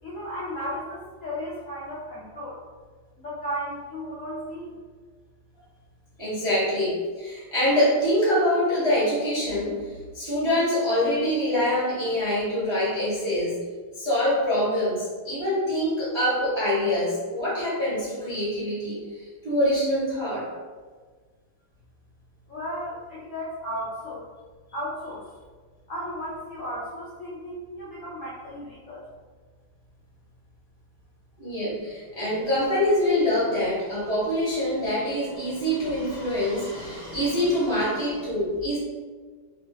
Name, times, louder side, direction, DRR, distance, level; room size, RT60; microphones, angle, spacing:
voice 1, 0.0-2.6 3.2-4.8 22.5-24.2 24.7-25.2 25.9-29.0, equal, 65° left, -8 dB, 0.7 m, -34 dB
voice 2, 6.2-13.6 14.0-20.5 31.4-38.8, left 1 dB, 25° right, -9 dB, 0.6 m, -25 dB
3.8 x 2.8 x 2.8 m, 1.5 s
omnidirectional pair, 2.2 m